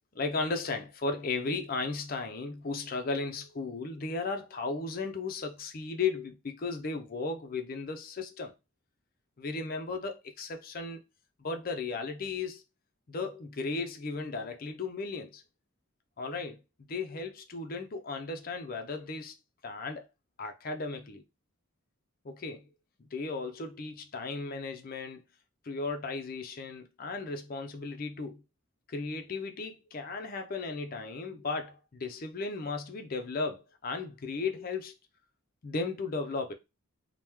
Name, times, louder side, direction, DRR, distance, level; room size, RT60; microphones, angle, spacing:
voice 1, 0.1-8.5 9.4-11.0 11.4-12.6 13.1-15.4 16.2-16.6 16.9-19.3 19.6-20.0 20.4-21.2 22.2-22.7 23.1-25.2 25.6-28.4 28.9-34.9 35.6-36.5, left 4 dB, 45° left, 0.5 m, -35 dB
2.9 x 2.1 x 3.4 m
head